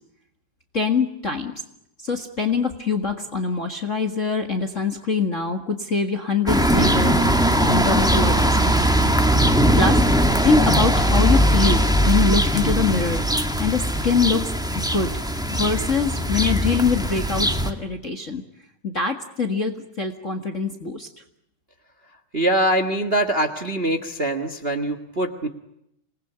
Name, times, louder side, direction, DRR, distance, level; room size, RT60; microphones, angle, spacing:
voice 1, 0.7-1.5 2.0-8.6 9.8-10.0 10.4-13.2 13.6-14.5 14.7-15.1 15.5-18.4 18.8-21.1, left 5 dB, 30° left, 5 dB, 1.6 m, -24 dB
sound 1, 6.5-17.7, right 1 dB, 5° right, 0.7 m, -20 dB
voice 2, 22.3-25.5, right 1 dB, 30° right, 9 dB, 1.1 m, -23 dB
27.5 x 20.0 x 10.0 m, 0.81 s
omnidirectional pair, 3.5 m